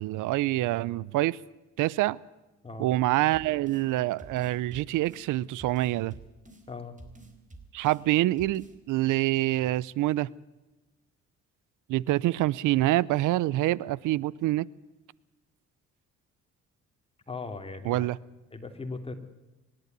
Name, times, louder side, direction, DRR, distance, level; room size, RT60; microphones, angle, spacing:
voice 1, 0.0-1.4 1.8-2.2 2.8-6.1 7.7-10.3 11.9-14.7 17.9-18.2, right 16 dB, 90° right, 23 dB, 0.6 m, -26 dB
sound 1, 3.3-3.9 4.2-5.3 5.6-6.7 7.0-8.0 8.4-8.8, right 2 dB, 25° right, 4.0 m, -49 dB
voice 2, 6.7-7.0 17.3-18.1 18.5-19.1, left 3 dB, 20° left, 5 dB, 3.1 m, -38 dB
25.0 x 12.5 x 9.4 m, 1.1 s
cardioid pair, 90°, 30 cm